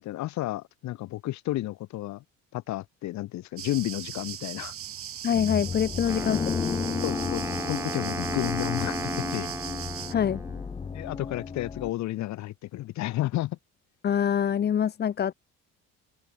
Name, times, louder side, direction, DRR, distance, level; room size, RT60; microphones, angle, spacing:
voice 1, 0.0-2.2 2.5-4.7 7.0-9.5 10.9-13.6, left 16 dB, 70° left, 2.4 m, -32 dB
sound 1, 3.6-10.1, right 10 dB, 50° right, 4.1 m, -39 dB
voice 2, 5.2-6.8 10.1-10.4 14.0-15.3, left 9 dB, 35° left, 0.9 m, -25 dB
sound 2, 5.3-11.9, left 6 dB, 20° left, 0.5 m, -33 dB
Wind instrument woodwind instrument, 6.1-11.0, right 2 dB, 10° right, 3.0 m, -36 dB
open air
cardioid pair, 120°, 30 cm